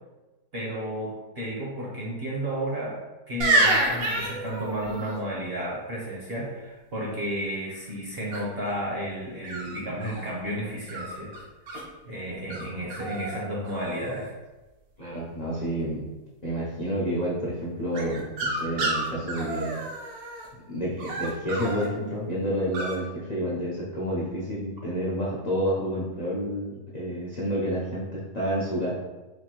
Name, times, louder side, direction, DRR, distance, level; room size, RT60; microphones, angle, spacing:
voice 1, 0.5-3.0 3.3-11.3 12.1-14.3, equal, 50° right, -5 dB, 0.9 m, -32 dB
sound 1, 3.4-5.2 8.3-8.7 9.4-10.3 10.9-11.8 12.5-12.6 12.9-13.4 13.6-14.3 17.9-20.5 21.0-21.9 22.7-22.9, right 2 dB, 70° right, 1.1 m, -28 dB
voice 2, 15.0-16.0 16.4-19.8 20.7-28.9, equal, 45° left, -7 dB, 0.5 m, -29 dB
4.3 x 2.6 x 2.9 m, 1.1 s
omnidirectional pair, 1.7 m